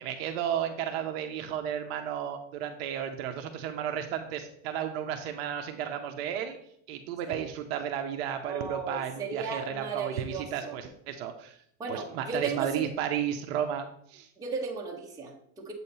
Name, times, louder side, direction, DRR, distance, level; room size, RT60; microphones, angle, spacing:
voice 1, 0.0-6.6 6.9-11.6 11.9-14.3, right 9 dB, 45° right, 5 dB, 0.6 m, -33 dB
voice 2, 8.5-10.8 11.8-12.9 14.4-15.7, right 5 dB, 10° right, -2 dB, 0.7 m, -35 dB
7.6 x 2.8 x 5.3 m, 0.69 s
supercardioid pair, 155°, 43 cm